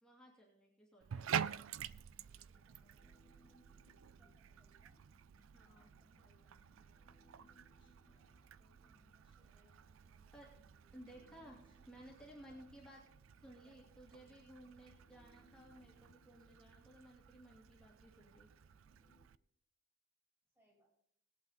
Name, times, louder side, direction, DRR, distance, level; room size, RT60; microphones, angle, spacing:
voice 1, 0.0-1.7 5.5-5.9 10.3-10.5 10.9-13.0 13.4-18.5, right 1 dB, 5° left, -4 dB, 2.7 m, -58 dB
Bathtub (filling or washing), 1.0-19.4, right 8 dB, 85° right, 0.4 m, -49 dB
Human voice, 1.1-19.3, left 1 dB, 25° left, 1.8 m, -72 dB
voice 2, 1.4-3.6 4.2-5.0 5.6-7.7 8.4-11.9 12.4-12.6 12.9-15.1 20.5-20.9, right 1 dB, 10° right, -3 dB, 4.6 m, -78 dB
20.0 x 8.4 x 4.1 m, 0.65 s
head